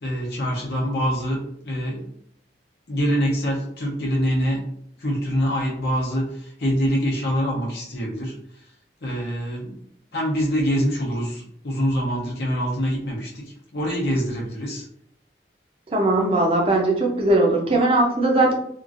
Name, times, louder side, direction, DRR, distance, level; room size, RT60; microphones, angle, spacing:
voice 1, 0.0-2.1 2.9-4.6 5.0-8.3 9.0-9.8 10.1-14.8, equal, 65° left, -3 dB, 0.7 m, -25 dB
voice 2, 15.9-18.5, right 2 dB, 30° right, 0 dB, 0.5 m, -19 dB
3.0 x 2.5 x 2.4 m, 0.69 s
head